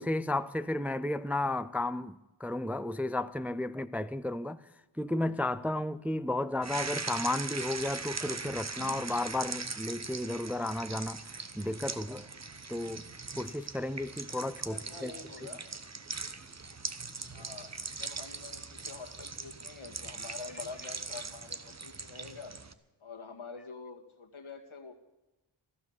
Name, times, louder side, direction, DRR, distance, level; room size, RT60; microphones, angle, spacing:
voice 1, 0.0-4.6 5.0-11.2 11.6-12.3 12.7-13.1 13.4-15.1, left 2 dB, 5° right, 0.4 m, -33 dB
sound 1, 6.6-22.7, right 4 dB, 35° right, 1.0 m, -40 dB
voice 2, 14.7-15.6 17.3-22.5 23.0-24.9, left 4 dB, 80° left, 2.0 m, -46 dB
15.0 x 12.0 x 7.2 m
wide cardioid pair, 50°, 48 cm